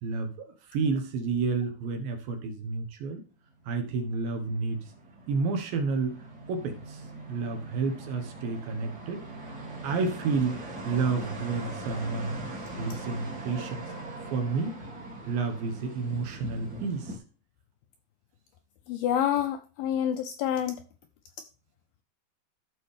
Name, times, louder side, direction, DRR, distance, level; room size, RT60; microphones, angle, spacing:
voice 1, 0.0-3.2 3.7-4.8 5.3-6.2 6.5-7.0 7.3-9.2 9.8-12.4 12.8-13.8 14.3-14.8 15.3-17.2, right 4 dB, 70° right, 5 dB, 2.6 m, -30 dB
sound 1, 3.7-17.2, right 1 dB, 30° right, 2.0 m, -41 dB
voice 2, 18.9-20.8, left 10 dB, 80° left, 7 dB, 2.2 m, -27 dB
14.0 x 5.1 x 3.3 m, 0.37 s
omnidirectional pair, 4.9 m